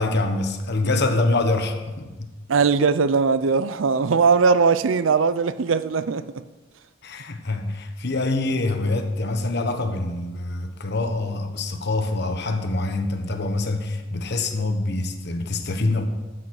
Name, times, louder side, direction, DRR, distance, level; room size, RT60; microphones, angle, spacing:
voice 1, 0.0-2.3 7.0-16.0, left 2 dB, 60° left, 1.2 m, -25 dB
voice 2, 2.5-6.2, right 5 dB, 90° right, 0.5 m, -20 dB
13.0 x 8.5 x 4.8 m
head